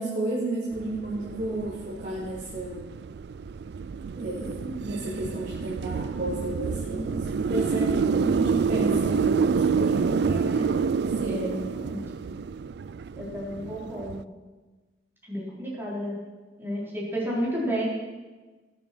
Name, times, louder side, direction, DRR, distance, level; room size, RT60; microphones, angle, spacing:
voice 1, 0.0-2.9 4.1-10.0 11.1-11.5, right 1 dB, 45° right, -9 dB, 3.2 m, -32 dB
sound 1, 0.7-14.2, right 5 dB, 65° right, 0.4 m, -28 dB
voice 2, 6.7-7.3 9.8-10.7 11.3-12.0 13.2-14.3 15.3-16.2 16.6-17.9, equal, 10° right, -5 dB, 4.2 m, -32 dB
19.5 x 7.4 x 6.2 m, 1.3 s
head